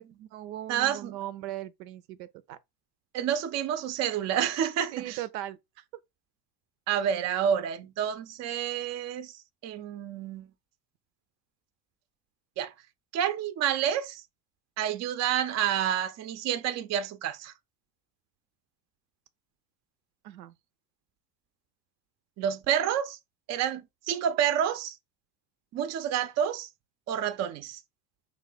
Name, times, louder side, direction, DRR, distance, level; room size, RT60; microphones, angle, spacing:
voice 1, 0.0-2.6 4.9-5.8 20.2-20.5, right 13 dB, 85° right, 0.6 m, -39 dB
voice 2, 0.7-1.1 3.1-5.2 6.9-9.3 9.6-10.5 12.6-12.7 13.1-14.2 14.8-17.5 22.4-23.2 23.5-25.0 25.7-26.7 27.1-27.8, right 9 dB, 35° right, 0.5 m, -29 dB
3.4 x 2.2 x 3.7 m
supercardioid pair, 90°, 49 cm